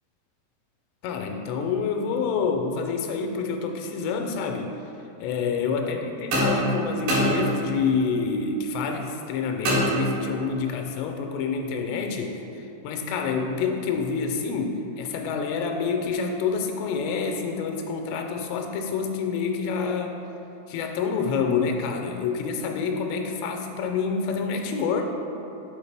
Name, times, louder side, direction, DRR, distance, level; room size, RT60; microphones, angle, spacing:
voice 1, 1.0-4.7 5.2-20.2 20.7-25.0, left 5 dB, 90° left, 3 dB, 2.8 m, -27 dB
sound 1, 6.3-8.0 9.6-10.6, right 1 dB, 65° right, 3.1 m, -25 dB
6.7 x 4.7 x 3.3 m, 3.0 s
omnidirectional pair, 4.8 m